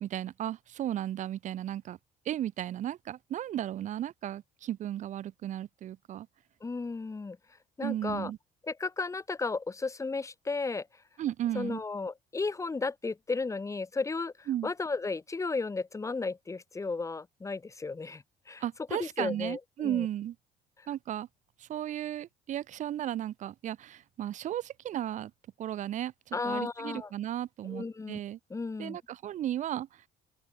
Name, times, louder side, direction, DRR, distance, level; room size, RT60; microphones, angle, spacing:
voice 1, 0.0-2.0 2.3-6.3 7.8-8.4 11.2-11.8 14.5-14.7 18.6-20.4 20.9-21.3 21.6-25.3 25.6-28.4 28.8-29.9, right 11 dB, 45° right, 0.4 m, -35 dB
voice 2, 6.6-7.4 7.8-8.3 8.6-10.9 11.5-18.6 18.9-20.1 26.3-27.1 27.7-28.2 28.5-29.0, left 4 dB, 20° left, 1.1 m, -34 dB
open air
cardioid pair, 110°, 17 cm